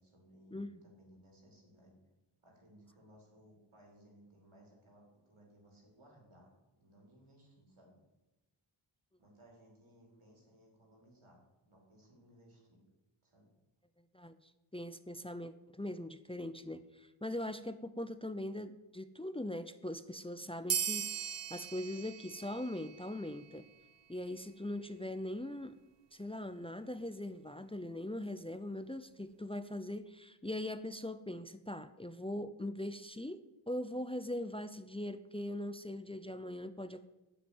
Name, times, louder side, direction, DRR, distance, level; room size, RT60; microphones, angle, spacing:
voice 1, 0.0-2.0 2.4-8.0 9.2-12.9 13.2-13.5, equal, 75° right, -1 dB, 4.6 m, -62 dB
voice 2, 14.1-23.7 24.1-25.8 26.1-33.4 33.7-37.1, left 1 dB, 10° left, 12 dB, 0.8 m, -41 dB
sound 1, 20.7-23.7, right 8 dB, 60° right, 0.8 m, -39 dB
9.3 x 7.8 x 9.3 m, 1.0 s
wide cardioid pair, 40°, 49 cm